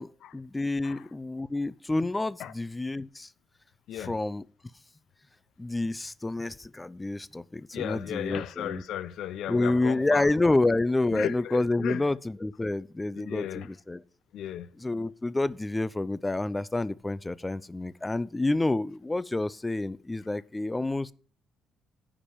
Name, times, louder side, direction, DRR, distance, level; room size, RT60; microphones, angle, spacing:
voice 1, 0.0-3.3 4.0-4.4 5.6-8.8 9.5-14.0 14.8-21.1, left 2 dB, 15° left, 0.5 m, -28 dB
voice 2, 7.7-10.3 11.1-12.0 13.2-13.7 14.3-14.7, left 11 dB, 80° left, 0.7 m, -35 dB
10.0 x 5.0 x 7.1 m
cardioid pair, 90°, 0 cm